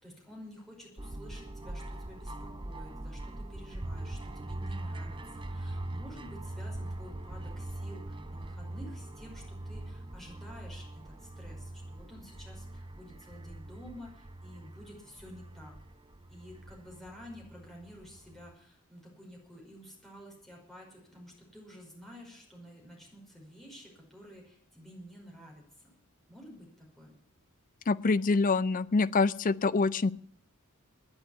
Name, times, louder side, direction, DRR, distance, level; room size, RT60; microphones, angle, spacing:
voice 1, 0.0-15.7 16.3-25.9 26.3-27.1, equal, ahead, -2 dB, 5.4 m, -51 dB
sound 1, 1.0-18.5, right 1 dB, 20° right, 0.8 m, -42 dB
voice 2, 27.9-30.1, left 4 dB, 35° left, 17 dB, 0.5 m, -26 dB
10.5 x 10.0 x 9.8 m, 0.64 s
head